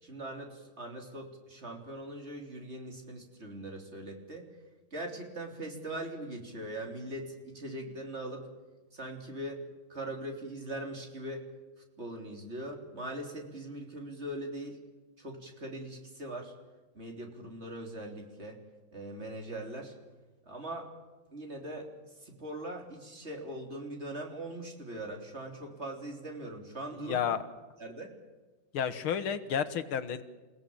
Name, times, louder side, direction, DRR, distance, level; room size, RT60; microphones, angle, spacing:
voice 1, 0.0-4.5 4.9-8.5 8.9-9.6 9.9-11.5 12.0-14.8 15.2-16.5 16.9-18.6 18.9-19.9 20.5-20.9 21.3-21.9 22.2-27.4 27.8-28.1, right 1 dB, 30° right, 2 dB, 3.7 m, -41 dB
voice 2, 26.9-27.4 28.7-30.2, left 8 dB, 85° left, 12 dB, 2.2 m, -31 dB
29.0 x 17.0 x 8.7 m, 1.2 s
omnidirectional pair, 2.3 m